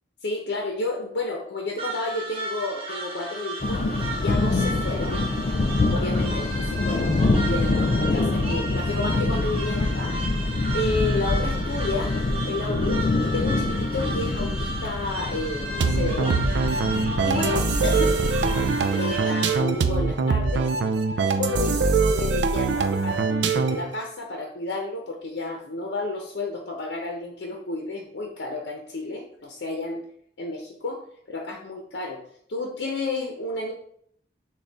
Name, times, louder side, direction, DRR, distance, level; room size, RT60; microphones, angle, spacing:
voice 1, 0.2-3.9 4.2-5.2 5.9-10.2 10.7-12.2 12.5-16.4 17.2-18.2 19.0-20.7 21.2-30.0 30.4-31.0 31.3-32.2 32.5-33.7, left 2 dB, 85° left, 1 dB, 0.7 m, -31 dB
sound 1, 1.8-19.6, right 2 dB, 30° right, 0.9 m, -35 dB
sound 2, 3.6-18.8, left 2 dB, 40° left, 0.3 m, -25 dB
sound 3, 15.8-23.9, right 4 dB, 90° right, 0.4 m, -23 dB
6.3 x 2.3 x 3.4 m, 0.66 s
head